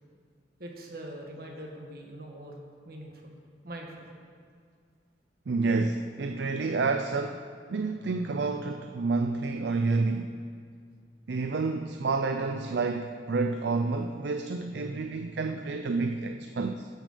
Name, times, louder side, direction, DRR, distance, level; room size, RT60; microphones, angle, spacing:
voice 1, 0.6-2.6 2.8-3.3 3.6-4.1, right 1 dB, 50° right, 0 dB, 1.7 m, -42 dB
voice 2, 5.5-7.4 7.7-10.5 11.3-16.9, right 3 dB, 70° right, 6 dB, 0.5 m, -29 dB
10.0 x 7.2 x 6.8 m, 2.1 s
head